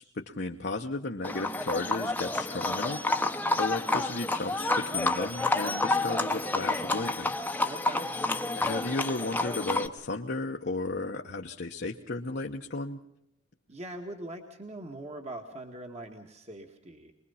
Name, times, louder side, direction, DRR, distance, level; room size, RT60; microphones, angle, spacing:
voice 1, 0.0-3.0 3.6-7.4 8.5-13.0, left 2 dB, 60° left, 1 dB, 1.0 m, -34 dB
Livestock farm animals working animals, 1.2-9.9, left 2 dB, 10° left, 0.9 m, -29 dB
voice 2, 7.6-8.1 13.7-17.1, right 1 dB, 35° right, 3 dB, 1.9 m, -42 dB
24.0 x 21.5 x 5.7 m, 0.77 s
head